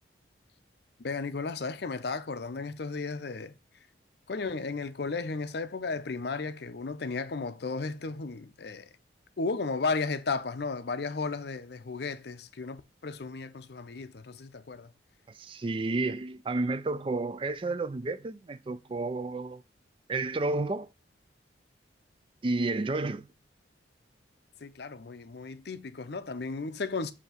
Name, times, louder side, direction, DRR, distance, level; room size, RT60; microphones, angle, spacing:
voice 1, 1.0-3.5 4.3-8.9 9.4-14.9 24.6-27.1, left 4 dB, 55° left, 0.5 m, -34 dB
voice 2, 15.3-19.6 20.1-20.9 22.4-23.3, right 3 dB, 25° right, 0.3 m, -31 dB
8.1 x 2.8 x 5.7 m
head